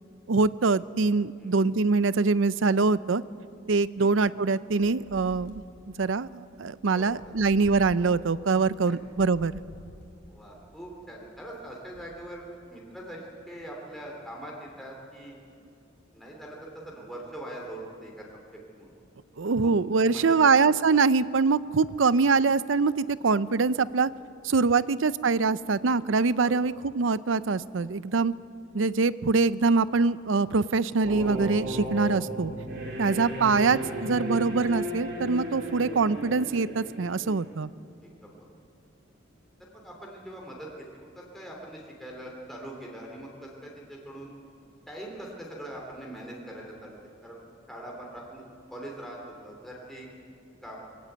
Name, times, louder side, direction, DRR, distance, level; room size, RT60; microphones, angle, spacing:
voice 1, 0.3-3.2 3.7-5.6 6.0-9.5 19.4-24.1 24.4-28.3 28.7-32.5 33.0-37.7, right 4 dB, 80° right, 16 dB, 0.6 m, -24 dB
sound 1, 4.7-5.9 6.7-8.2 8.9-10.4 11.1-12.3, equal, 55° left, 4.1 m, -49 dB
voice 2, 10.3-15.3 16.1-18.2 18.5-19.0 19.4-19.7 20.1-20.4 24.7-24.9 26.4-26.6 38.0-38.4 39.6-44.3 44.9-47.4 47.7-48.4 48.7-50.1 50.6-50.8, right 1 dB, ahead, -3 dB, 3.0 m, -42 dB
sound 2, 31.0-37.5, right 1 dB, 60° right, 4.6 m, -34 dB
22.5 x 16.0 x 9.3 m, 2.5 s
head